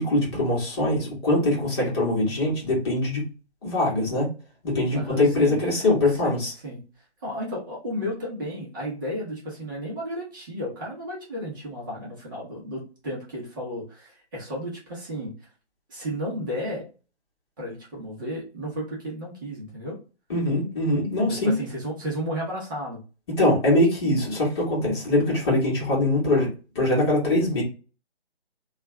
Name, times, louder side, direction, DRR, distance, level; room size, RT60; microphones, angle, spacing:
voice 1, 0.0-3.3 3.6-4.3 4.6-6.5 20.3-21.5 23.4-26.5 26.7-27.6, left 1 dB, 25° left, -4 dB, 1.3 m, -22 dB
voice 2, 4.9-5.6 6.1-6.4 6.6-6.8 7.2-15.3 15.9-16.9 17.6-20.0 21.3-23.0, equal, 20° right, -4 dB, 0.9 m, -33 dB
3.2 x 2.4 x 3.1 m, 0.34 s
figure-of-eight pair, 145°, 33 cm